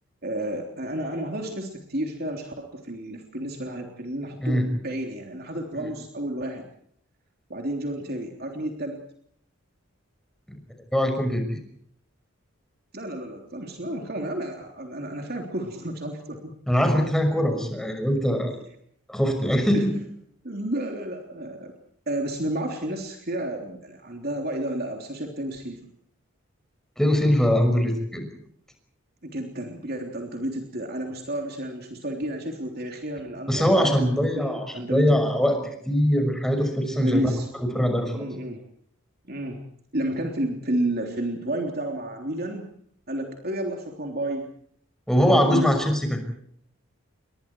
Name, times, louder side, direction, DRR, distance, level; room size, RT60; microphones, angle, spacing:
voice 1, 0.2-6.7 7.5-9.0 12.9-16.5 19.7-19.9 20.4-21.7 22.1-25.9 29.2-35.2 37.0-37.5 38.1-38.6 39.3-39.6 39.9-42.7 43.1-44.4 45.3-45.7, right 1 dB, 45° right, 2 dB, 3.4 m, -31 dB
voice 2, 10.9-11.6 16.7-18.5 19.1-20.0 27.0-28.3 33.5-34.6 34.9-37.3 37.6-38.3 45.1-46.2, equal, ahead, 5 dB, 6.0 m, -22 dB
30.0 x 24.0 x 4.7 m, 0.67 s
head